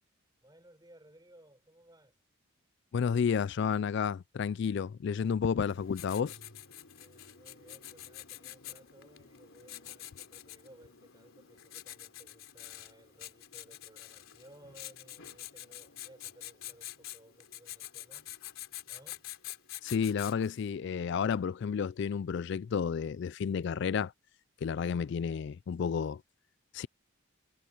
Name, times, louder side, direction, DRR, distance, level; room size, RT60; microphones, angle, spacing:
voice 1, 0.4-2.2 6.9-18.3 18.9-19.2, right 1 dB, 20° right, 4.3 m, -59 dB
voice 2, 2.9-6.4 19.8-24.1 24.6-26.2 26.7-26.9, left 6 dB, 55° left, 0.3 m, -31 dB
Writing, 5.7-20.6, left 12 dB, 70° left, 3.2 m, -47 dB
head